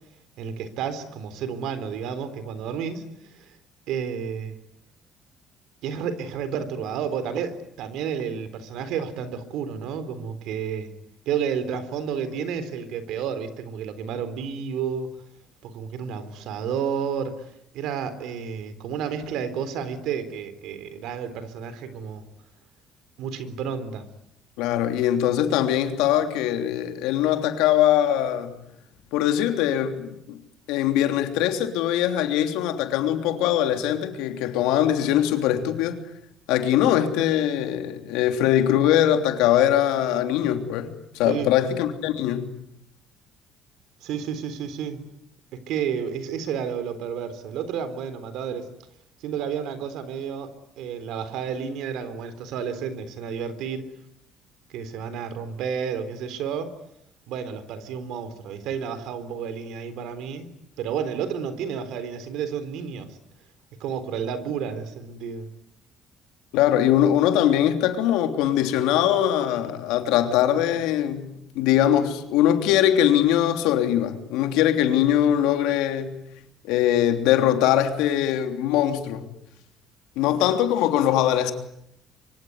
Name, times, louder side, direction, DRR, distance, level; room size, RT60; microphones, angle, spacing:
voice 1, 0.4-3.0 3.3-3.5 3.9-4.6 5.8-10.9 11.3-15.1 15.6-17.5 17.7-22.2 23.2-24.1 41.2-41.5 44.0-45.0 45.5-48.7 49.2-50.5 50.8-53.8 54.7-56.7 57.3-60.5 60.8-63.2 63.8-65.5, right 7 dB, 80° right, 3.8 m, -31 dB
voice 2, 24.6-28.6 29.1-30.4 30.7-36.0 36.5-42.5 66.5-76.2 76.6-79.3 80.1-81.5, left 11 dB, 90° left, 3.2 m, -22 dB
25.0 x 24.5 x 9.6 m
cardioid pair, 105°, 0 cm